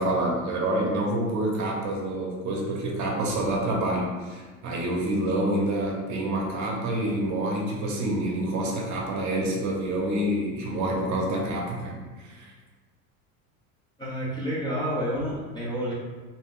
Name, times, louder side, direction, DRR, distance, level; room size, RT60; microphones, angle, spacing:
voice 1, 0.0-12.0 12.2-12.5, right 1 dB, 45° right, -1 dB, 0.9 m, -27 dB
voice 2, 14.0-15.9, equal, 10° left, -6 dB, 0.6 m, -29 dB
2.7 x 2.2 x 3.7 m, 1.3 s
supercardioid pair, 100°, 41 cm